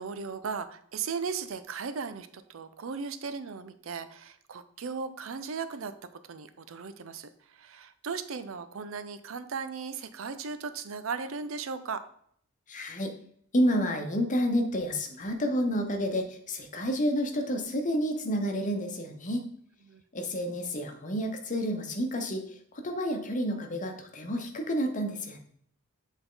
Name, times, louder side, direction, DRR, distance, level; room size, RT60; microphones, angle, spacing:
voice 1, 0.0-12.1 19.8-20.0, right 5 dB, 70° right, 11 dB, 0.5 m, -37 dB
voice 2, 12.7-13.1 13.5-19.5 20.1-22.4 22.7-25.4, equal, 40° left, 4 dB, 1.0 m, -29 dB
7.9 x 3.6 x 3.9 m, 0.64 s
head